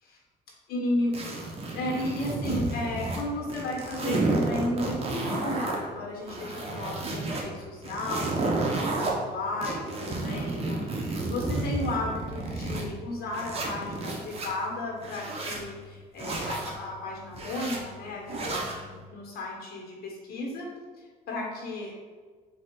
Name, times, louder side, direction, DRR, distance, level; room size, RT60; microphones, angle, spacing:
voice 1, 0.7-1.1 1.7-20.7 21.0-22.1, left 2 dB, 65° left, -1 dB, 1.3 m, -34 dB
sound 1, 1.1-3.2 3.5-5.8 6.2-7.4 7.8-9.1 9.6-12.8 13.3-14.5 15.0-15.6 16.2-16.7 17.3-17.8 18.3-18.8, right 2 dB, 35° right, 0.9 m, -31 dB
3.8 x 2.7 x 4.5 m, 1.5 s
cardioid pair, 110°, 17 cm